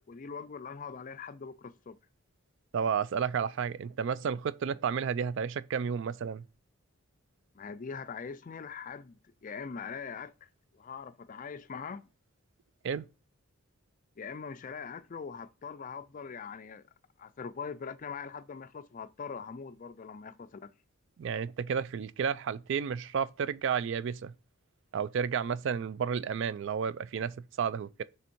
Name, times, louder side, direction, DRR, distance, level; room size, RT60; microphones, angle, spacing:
voice 1, 0.0-2.0 7.5-10.5 10.7-12.0 14.2-16.8 17.2-20.7, left 5 dB, 35° left, 0.4 m, -42 dB
voice 2, 2.7-6.4 12.8-13.1 21.2-24.3 24.9-28.0, right 7 dB, 60° right, 0.3 m, -32 dB
6.9 x 3.5 x 4.4 m
head